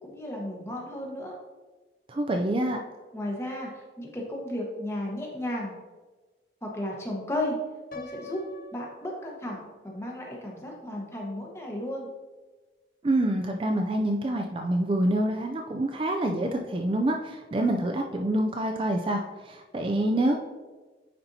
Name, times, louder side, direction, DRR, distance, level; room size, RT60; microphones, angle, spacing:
voice 1, 0.0-1.4 3.1-5.7 6.6-7.6 7.9-8.4 8.7-12.1, left 1 dB, 15° left, -1 dB, 1.0 m, -34 dB
voice 2, 2.1-2.8 13.0-20.3, right 1 dB, 30° right, 3 dB, 0.4 m, -26 dB
Piano, 7.9-9.9, left 3 dB, 50° left, 0.5 m, -45 dB
9.5 x 4.3 x 2.7 m, 1.3 s
head